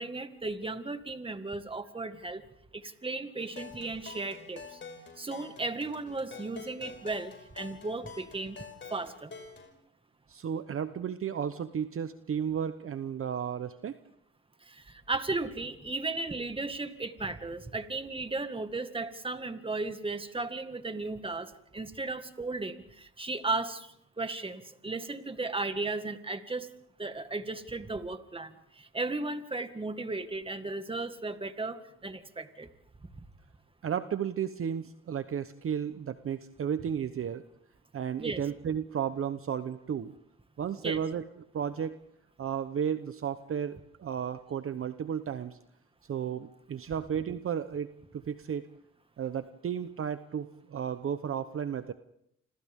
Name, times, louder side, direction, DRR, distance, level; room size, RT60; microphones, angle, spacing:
voice 1, 0.0-2.4 2.7-4.8 5.2-8.6 8.9-9.3 14.6-26.7 27.0-32.7 33.1-33.3 38.2-38.4 40.8-41.0, right 3 dB, 20° right, 8 dB, 1.9 m, -35 dB
sound 1, 3.4-9.7, left 4 dB, 40° left, 5.8 m, -47 dB
voice 2, 10.3-14.0 33.8-37.4 37.9-40.1 40.6-41.2 41.5-42.0 42.4-45.6 46.1-47.9 48.1-48.6 49.2-51.9, right 8 dB, 45° right, 11 dB, 1.0 m, -33 dB
29.0 x 26.5 x 3.7 m, 0.74 s
cardioid pair, 90°, 30 cm